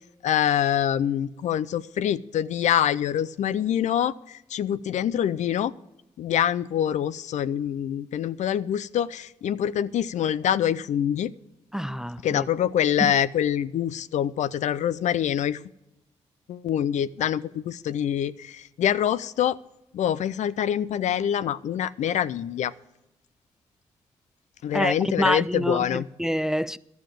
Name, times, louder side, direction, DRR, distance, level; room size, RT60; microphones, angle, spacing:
voice 1, 0.2-5.7 6.2-11.3 12.2-15.6 16.5-19.6 19.9-22.7 24.6-26.1, left 10 dB, 70° left, 0.4 m, -25 dB
voice 2, 11.7-12.5 13.0-13.1 24.7-26.8, equal, 5° right, 0.3 m, -27 dB
12.0 x 7.1 x 7.5 m
supercardioid pair, 55°, 13 cm